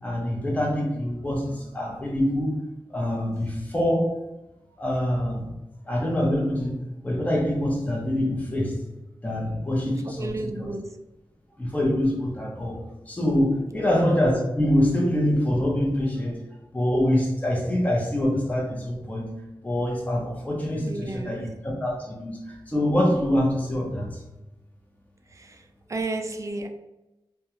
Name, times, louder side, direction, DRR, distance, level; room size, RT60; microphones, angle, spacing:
voice 1, 0.0-2.6 2.9-4.2 4.8-5.5 5.8-6.8 7.0-8.8 9.2-10.3 10.6-10.7 11.6-16.4 16.7-19.3 19.6-24.2, left 1 dB, 15° left, -2 dB, 0.7 m, -25 dB
voice 2, 10.0-11.0 13.7-14.0 20.8-21.4 25.3-26.7, right 2 dB, 35° right, 5 dB, 0.3 m, -33 dB
2.3 x 2.2 x 2.9 m, 0.99 s
wide cardioid pair, 70°, 9 cm